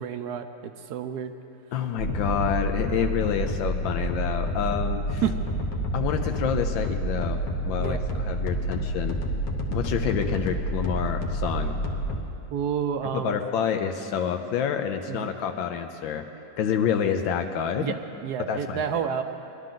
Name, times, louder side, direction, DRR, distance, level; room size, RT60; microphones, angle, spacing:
voice 1, 0.0-1.3 5.2-5.3 7.8-8.0 12.5-13.4 15.1-15.3 17.8-19.2, right 8 dB, 70° right, 8 dB, 1.0 m, -30 dB
voice 2, 1.7-5.2 5.9-7.4 7.7-9.2 9.7-11.8 13.1-16.2 16.6-17.9 18.5-19.1, left 8 dB, 80° left, 6 dB, 1.4 m, -28 dB
sound 1, 2.0-12.2, equal, 65° left, 1.6 m, -29 dB
21.0 x 11.5 x 3.8 m, 2.8 s
omnidirectional pair, 2.1 m